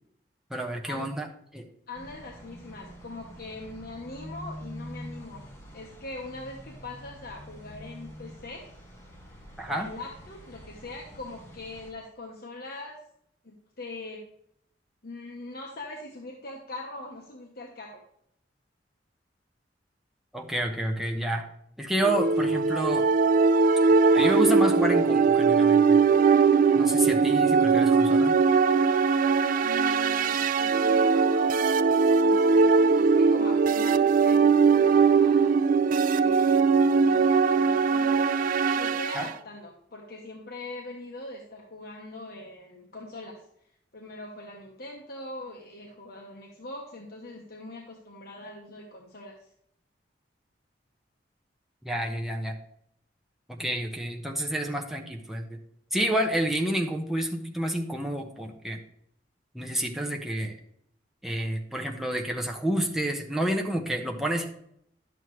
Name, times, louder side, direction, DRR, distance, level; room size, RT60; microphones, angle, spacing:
voice 1, 0.5-1.3 1.5-1.7 9.6-9.9 20.3-21.5 21.8-23.0 24.1-26.0 26.7-28.3 39.1-39.3 51.8-52.5 53.5-55.6 55.9-58.8 59.5-60.6 61.2-64.5, right 1 dB, ahead, 0 dB, 1.0 m, -29 dB
voice 2, 1.9-5.4 5.7-8.6 9.7-13.0 13.4-14.2 15.0-18.0 29.6-31.7 32.2-32.7 33.0-35.6 36.1-38.3 38.7-43.4 43.9-49.3, left 2 dB, 60° left, -1 dB, 1.2 m, -42 dB
sound 1, 1.9-11.9, equal, 15° left, 1.9 m, -45 dB
sound 2, 22.0-39.3, right 5 dB, 50° right, 0.3 m, -21 dB
11.0 x 7.6 x 3.2 m, 0.72 s
head